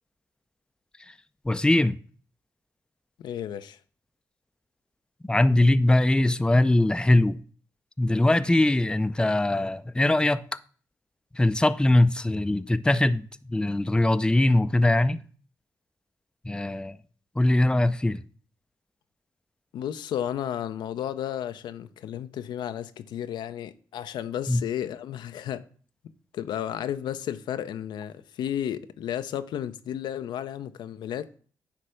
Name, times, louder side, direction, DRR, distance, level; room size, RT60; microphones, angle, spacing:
voice 1, 1.5-2.0 5.2-7.4 8.0-10.4 11.3-13.2 13.5-15.2 16.4-17.0 17.4-18.2 24.5-24.6, left 1 dB, 10° left, 0.5 m, -21 dB
voice 2, 3.2-3.8 19.7-25.6 26.3-31.3, left 10 dB, 85° left, 0.5 m, -33 dB
9.8 x 3.3 x 6.4 m
cardioid pair, 60°, 8 cm